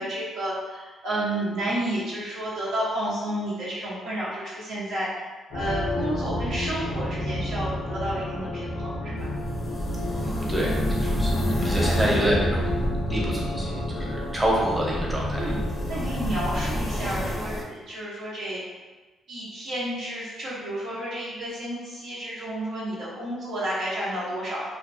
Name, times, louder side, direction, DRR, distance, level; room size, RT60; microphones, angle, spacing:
voice 1, 0.0-5.1 5.5-9.3 15.4-15.6 15.9-18.6 19.3-24.6, right 1 dB, 80° right, -9 dB, 0.6 m, -31 dB
sound 1, 5.5-17.4, left 1 dB, 90° left, 0.6 m, -31 dB
sound 2, 9.2-17.6, equal, 25° left, 0.5 m, -30 dB
voice 2, 10.2-11.3 11.6-12.7 13.1-15.4, equal, 10° right, -4 dB, 0.7 m, -27 dB
2.4 x 2.2 x 2.4 m, 1.2 s
cardioid pair, 90°, 0 cm